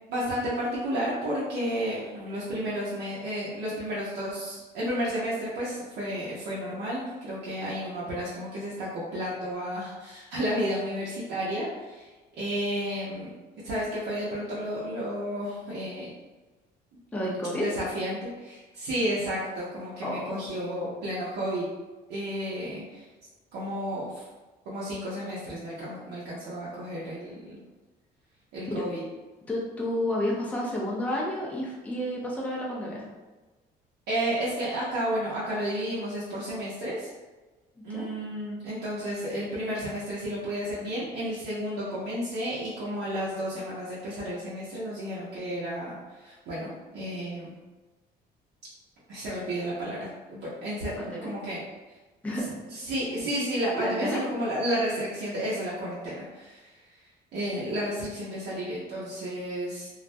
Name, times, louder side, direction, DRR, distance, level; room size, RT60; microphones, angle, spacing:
voice 1, 0.1-13.3 13.6-16.1 17.5-21.7 22.1-23.0 23.5-24.2 24.7-27.6 28.5-29.0 34.1-37.1 37.8-47.5 49.1-50.9 51.2-51.6 52.7-57.0 57.3-59.9, equal, 80° right, -8 dB, 0.7 m, -32 dB
voice 2, 17.1-17.7 20.0-20.3 28.7-28.8 29.5-33.1 37.9-38.1 51.0-51.3 52.2-52.6 53.7-54.2, left 1 dB, 10° left, -4 dB, 0.5 m, -30 dB
2.2 x 2.1 x 2.6 m, 1.2 s
cardioid pair, 110°, 17 cm